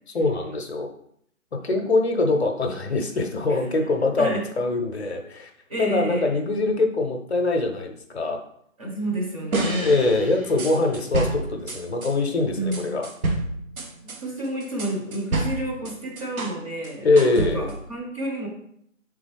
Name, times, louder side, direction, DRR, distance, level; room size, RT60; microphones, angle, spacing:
voice 1, 0.1-0.9 1.5-5.5 5.8-8.4 9.8-13.1 17.0-17.7, left 3 dB, 50° left, 4 dB, 0.6 m, -23 dB
voice 2, 4.2-4.5 5.7-6.3 8.8-9.9 12.5-13.0 14.0-17.1 17.3-18.5, right 1 dB, 25° right, -2 dB, 0.8 m, -30 dB
sound 1, 9.5-12.1 12.7-16.6 16.8-17.9, right 2 dB, 90° right, 0.8 m, -29 dB
3.6 x 3.5 x 3.3 m, 0.69 s
figure-of-eight pair, 150°, 41 cm